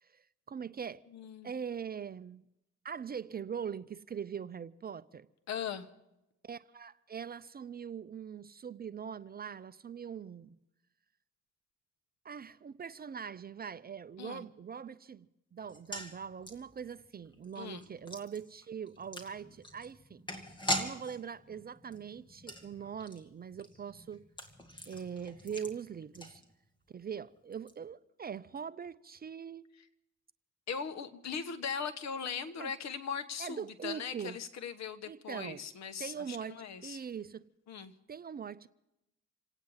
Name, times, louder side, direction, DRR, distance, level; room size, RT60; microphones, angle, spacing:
voice 1, 0.0-1.0 1.4-2.4 2.8-5.3 6.4-10.6 12.2-20.3 20.8-24.2 24.9-26.4 26.9-29.7 32.6-32.7 33.4-34.4 35.1-35.6 36.0-37.5 38.1-38.7, right 7 dB, 30° right, 0.5 m, -42 dB
voice 2, 1.1-1.5 5.5-5.9 14.2-14.4 17.6-17.9 30.7-37.0 37.7-37.9, left 6 dB, 60° left, 1.3 m, -39 dB
sound 1, 15.6-26.9 27.1-27.2 27.5-27.7, equal, 15° left, 2.2 m, -42 dB
27.0 x 9.2 x 5.6 m
cardioid pair, 90°, 30 cm